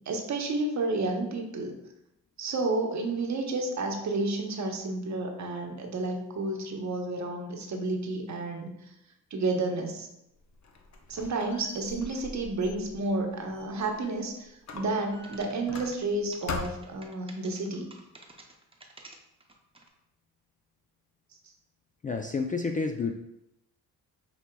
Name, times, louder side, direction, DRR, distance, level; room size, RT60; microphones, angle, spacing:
voice 1, 0.1-1.7 2.4-8.9 9.3-10.1 11.1-17.9, right 2 dB, 45° right, 2 dB, 0.9 m, -31 dB
Squeak, 10.4-14.2 14.7-16.2 16.5-17.0, left 3 dB, 45° left, 0.7 m, -41 dB
sound 1, 15.1-19.9, right 2 dB, 15° right, 0.7 m, -51 dB
voice 2, 22.0-23.1, left 4 dB, 25° left, 3 dB, 0.3 m, -29 dB
5.9 x 2.7 x 2.2 m, 0.84 s
supercardioid pair, 60°, 38 cm